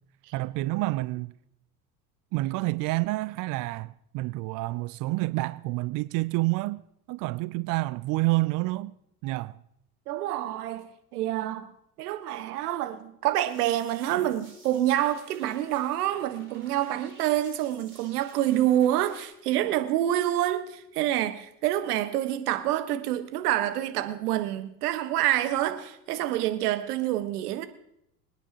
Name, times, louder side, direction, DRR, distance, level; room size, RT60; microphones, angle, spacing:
voice 1, 0.3-1.3 2.3-6.8 7.1-8.9 9.2-9.6, right 21 dB, 45° right, 0.5 m, -28 dB
voice 2, 10.1-10.8 11.1-11.7 12.0-27.6, right 13 dB, 75° right, 1.5 m, -27 dB
sound 1, 13.5-19.2, right 3 dB, 25° right, 5.4 m, -53 dB
25.5 x 9.9 x 2.9 m
hypercardioid pair, 80°, 46 cm